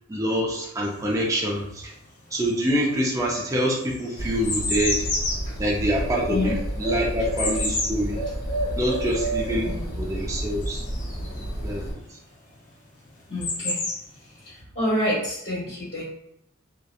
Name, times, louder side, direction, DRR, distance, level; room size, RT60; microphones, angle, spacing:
voice 1, 0.1-1.9 2.3-5.0 5.6-8.2 8.8-9.7 10.0-10.8 11.6-12.2, equal, 15° right, -3 dB, 0.4 m, -26 dB
sound 1, 0.8-2.0 2.3-11.6 12.6-12.7 12.9-14.5, left 2 dB, 40° left, 0.6 m, -31 dB
Bird, 4.2-11.9, right 1 dB, 80° left, 1.0 m, -30 dB
voice 2, 9.6-10.0 11.2-11.3 13.3-13.8 14.4-16.0, left 1 dB, 60° left, -11 dB, 1.3 m, -28 dB
2.8 x 2.2 x 2.3 m, 0.77 s
head